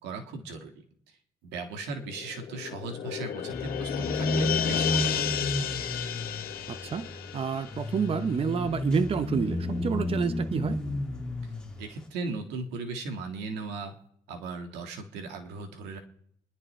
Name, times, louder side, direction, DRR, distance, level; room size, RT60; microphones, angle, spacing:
voice 1, 0.0-0.7 1.4-5.2 11.8-13.9 14.3-16.0, right 3 dB, 90° right, 1.9 m, -37 dB
sound 1, 1.9-8.9 9.2-9.3, left 9 dB, 60° left, 1.4 m, -33 dB
sound 2, 3.5-11.9, left 2 dB, 5° left, 2.4 m, -32 dB
voice 2, 6.7-7.1 7.3-10.8, right 6 dB, 35° right, 0.9 m, -29 dB
28.0 x 11.0 x 3.3 m
cardioid pair, 110°, 17 cm